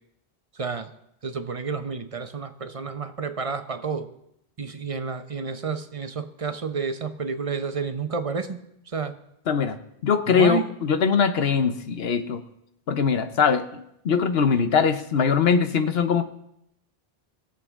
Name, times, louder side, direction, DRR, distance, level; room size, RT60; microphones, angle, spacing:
voice 1, 0.5-0.9 1.2-4.1 4.6-9.1 10.3-10.7, right 5 dB, 35° right, 9 dB, 0.8 m, -30 dB
voice 2, 9.5-9.8 10.0-12.4 12.9-13.7 14.0-16.2, left 6 dB, 75° left, 10 dB, 1.1 m, -21 dB
21.0 x 7.7 x 3.6 m, 0.78 s
omnidirectional pair, 1.0 m